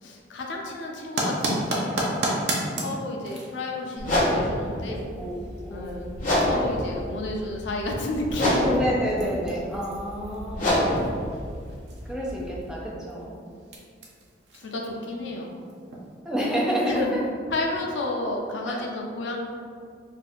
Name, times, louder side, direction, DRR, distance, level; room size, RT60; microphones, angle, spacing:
voice 1, 0.0-2.0 2.8-5.0 5.7-6.1 6.4-8.9 14.5-15.6 16.8-17.1 17.5-19.4, left 2 dB, 85° left, 0 dB, 0.5 m, -31 dB
sound 1, 1.0-16.2, right 1 dB, 65° right, 0.6 m, -35 dB
sound 2, 4.0-12.7, left 1 dB, 45° left, 0.8 m, -27 dB
voice 2, 4.9-6.0 8.6-11.0 12.1-13.5 16.2-17.0 18.7-18.8, equal, 5° right, -5 dB, 0.5 m, -29 dB
2.7 x 2.4 x 4.0 m, 2.2 s
head